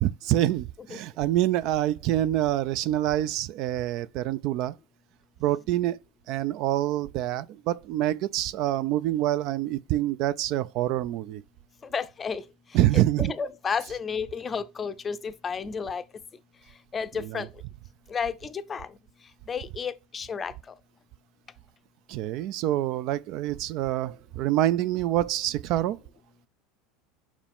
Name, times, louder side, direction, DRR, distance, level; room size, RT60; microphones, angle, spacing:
voice 1, 0.0-4.7 5.4-6.0 6.3-11.4 12.7-13.3 17.2-17.5 22.1-26.0, right 13 dB, 60° right, 0.3 m, -26 dB
voice 2, 11.9-12.4 13.2-16.0 16.9-17.5 18.1-18.9 19.5-20.5, left 6 dB, 25° left, 0.5 m, -31 dB
5.5 x 4.9 x 3.5 m
supercardioid pair, 115°, 0 cm